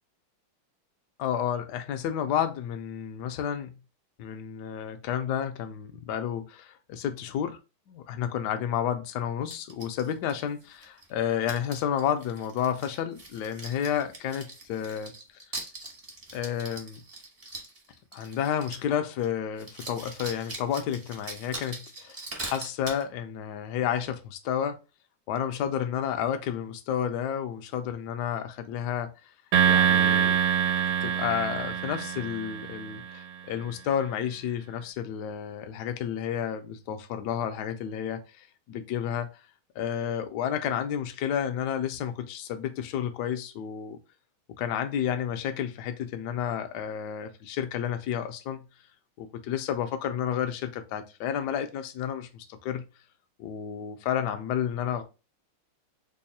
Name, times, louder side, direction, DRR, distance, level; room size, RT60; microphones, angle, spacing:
voice 1, 1.2-3.8 4.2-7.6 7.9-15.1 16.3-17.0 18.1-24.8 25.3-29.1 29.6-30.4 31.0-39.3 39.8-44.0 44.6-48.6 49.2-52.9 53.4-55.0, left 9 dB, 80° left, 0.9 m, -31 dB
sound 1, 9.5-11.1 11.4-18.9 19.2-19.3 19.6-23.0, right 2 dB, 40° right, 0.5 m, -42 dB
sound 2, 29.5-33.0, right 8 dB, 85° right, 1.6 m, -24 dB
3.5 x 2.3 x 4.0 m
omnidirectional pair, 2.3 m